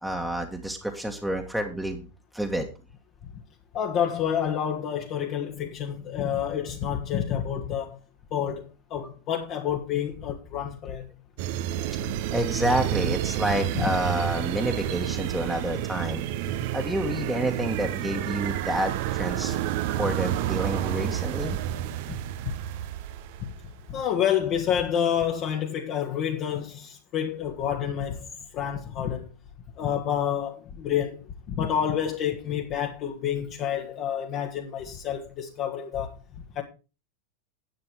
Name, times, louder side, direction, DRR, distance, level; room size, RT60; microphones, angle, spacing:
voice 1, 0.0-2.1 2.3-2.7 12.3-16.2 16.7-19.6 20.0-21.5, right 1 dB, 5° right, 1.6 m, -29 dB
voice 2, 3.7-8.0 8.3-8.6 8.9-11.1 13.7-13.9 23.4-23.5 23.9-28.3 28.5-29.3 29.8-31.2 31.5-36.1 36.5-36.6, left 9 dB, 35° left, 1.7 m, -28 dB
sound 1, 11.4-23.7, right 12 dB, 50° right, 0.9 m, -30 dB
11.0 x 8.7 x 4.7 m
figure-of-eight pair, 90°, 0 cm